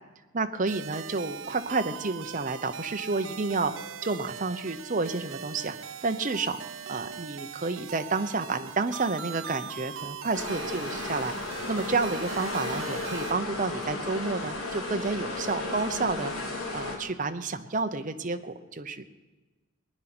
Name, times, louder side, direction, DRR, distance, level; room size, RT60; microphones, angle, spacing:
voice 1, 0.3-3.7 4.0-5.7 6.0-6.6 6.9-16.3 16.7-19.0, right 3 dB, 40° right, 8 dB, 0.8 m, -30 dB
sound 1, 0.7-13.3, right 7 dB, 70° right, 0.6 m, -41 dB
sound 2, 10.3-17.0, left 2 dB, 80° left, 3.3 m, -34 dB
20.0 x 10.0 x 6.1 m, 1.2 s
head